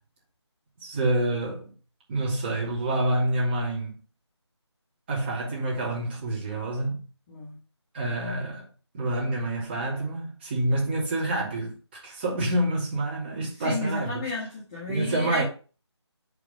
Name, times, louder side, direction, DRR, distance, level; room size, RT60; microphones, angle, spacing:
voice 1, 0.8-1.6 2.1-4.0 5.1-7.1 7.9-8.6 8.9-11.8 12.0-14.3 14.9-15.4, right 1 dB, 20° right, 2.8 m, -27 dB
voice 2, 13.6-15.4, left 2 dB, 10° left, 1.2 m, -32 dB
5.8 x 4.8 x 5.3 m
figure-of-eight pair, 160°, 15 cm